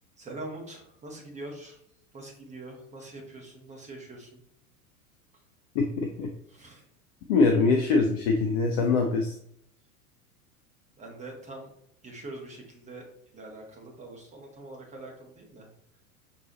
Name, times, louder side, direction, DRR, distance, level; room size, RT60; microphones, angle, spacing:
voice 1, 0.2-1.8 2.1-4.4 6.5-6.8 11.0-11.7 12.0-13.0 13.3-15.7, right 2 dB, 15° right, 0 dB, 1.1 m, -43 dB
voice 2, 5.7-6.3 7.3-9.3, left 4 dB, 30° left, 3 dB, 0.4 m, -23 dB
5.9 x 2.8 x 2.9 m, 0.73 s
figure-of-eight pair, 85°, 44 cm